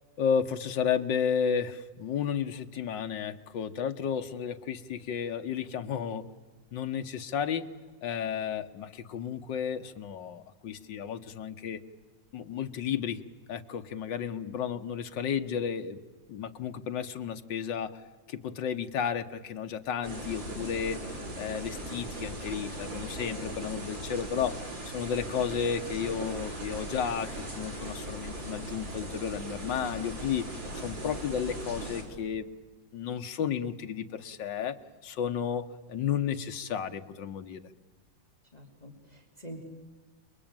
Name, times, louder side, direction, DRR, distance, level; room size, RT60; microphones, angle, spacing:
voice 1, 0.2-6.3 6.7-7.7 8.0-11.8 12.3-13.2 13.5-16.0 16.3-18.0 18.3-24.6 24.9-30.5 30.8-32.5 32.9-37.6, left 7 dB, 75° left, 8 dB, 1.9 m, -32 dB
sound 1, 20.0-32.0, right 1 dB, 85° right, 6.3 m, -39 dB
voice 2, 38.5-39.6, right 1 dB, 20° left, 2 dB, 2.9 m, -46 dB
28.5 x 22.0 x 9.0 m, 1.3 s
omnidirectional pair, 2.0 m